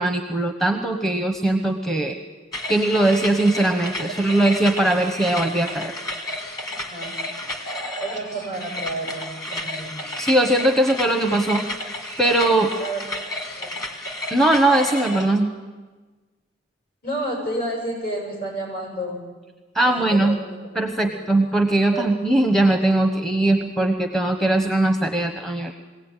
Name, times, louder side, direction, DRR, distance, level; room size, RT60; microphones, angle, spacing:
voice 1, 0.0-2.1 2.7-5.9 10.2-11.7 12.2-12.7 14.3-15.5 19.7-20.4 20.7-25.7, right 1 dB, ahead, 4 dB, 1.1 m, -20 dB
sound 1, 2.5-15.4, left 1 dB, 20° left, 1.9 m, -32 dB
voice 2, 4.0-4.4 6.8-7.2 8.0-10.1 12.8-13.0 13.5-13.7 17.0-19.2 20.0-20.6 21.0-21.2 21.9-22.0, right 1 dB, 50° left, -1 dB, 7.8 m, -30 dB
22.0 x 17.0 x 9.0 m, 1.3 s
head